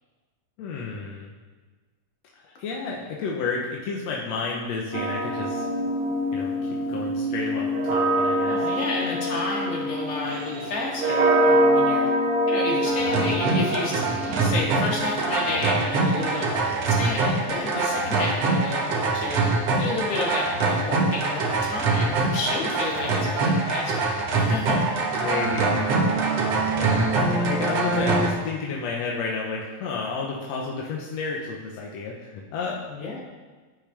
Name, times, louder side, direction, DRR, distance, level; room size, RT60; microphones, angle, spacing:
voice 1, 0.6-1.3 2.6-5.6 6.3-8.7 25.2-32.8, left 4 dB, 70° left, -2 dB, 1.7 m, -31 dB
sound 1, 4.9-16.9 17.9-19.2, right 1 dB, 75° right, 2.6 m, -25 dB
voice 2, 8.3-12.0 12.5-19.4 19.8-24.1 24.3-25.0 32.9-33.2, left 2 dB, 50° left, -3 dB, 2.7 m, -31 dB
sound 2, 12.9-28.3, right 3 dB, 55° right, 2.0 m, -24 dB
10.0 x 9.7 x 3.4 m, 1.3 s
omnidirectional pair, 4.0 m